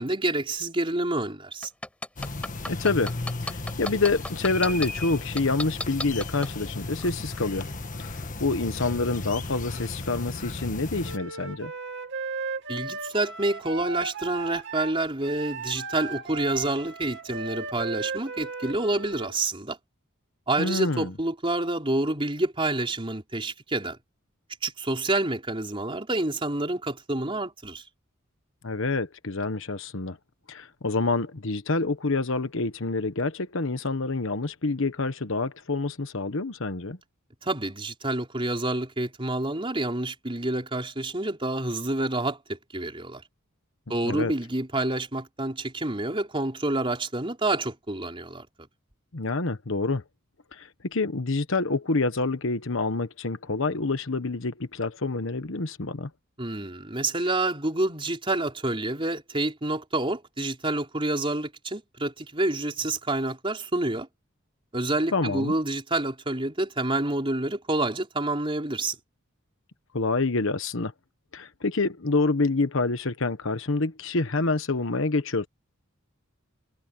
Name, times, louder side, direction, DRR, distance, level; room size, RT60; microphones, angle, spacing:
voice 1, 0.0-1.7 12.7-19.8 20.5-24.0 24.6-27.8 37.4-43.2 43.9-48.5 56.4-64.1 64.7-69.0, right 2 dB, 25° right, 4.3 m, -28 dB
sound 1, 1.6-4.9 5.4-6.5 7.0-7.1, left 1 dB, 5° left, 4.9 m, -32 dB
sound 2, 2.2-11.2, left 2 dB, 40° left, 1.6 m, -35 dB
voice 2, 2.7-3.1 3.4-7.7 8.0-11.7 20.6-21.1 28.6-30.2 30.5-37.0 44.0-44.3 49.1-50.0 50.5-56.1 65.1-65.5 69.9-70.9 71.3-75.5, left 3 dB, 65° left, 1.2 m, -27 dB
Wind instrument woodwind instrument, 11.0-19.4, right 4 dB, 55° right, 2.7 m, -36 dB
head